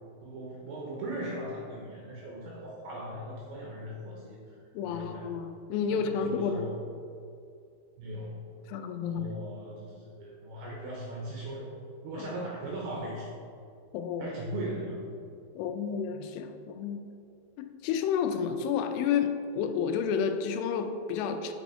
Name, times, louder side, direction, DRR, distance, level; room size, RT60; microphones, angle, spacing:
voice 1, 0.2-4.6 4.8-5.4 5.9-6.8 8.0-8.5 9.0-11.8 12.0-13.4 14.2-15.1, right 1 dB, 75° right, -3 dB, 2.4 m, -38 dB
voice 2, 4.7-6.7 8.7-9.3 12.2-12.3 13.9-14.3 15.6-17.1 17.6-21.5, left 7 dB, 85° left, 7 dB, 2.9 m, -31 dB
7.0 x 6.1 x 5.0 m, 2.5 s
omnidirectional pair, 5.5 m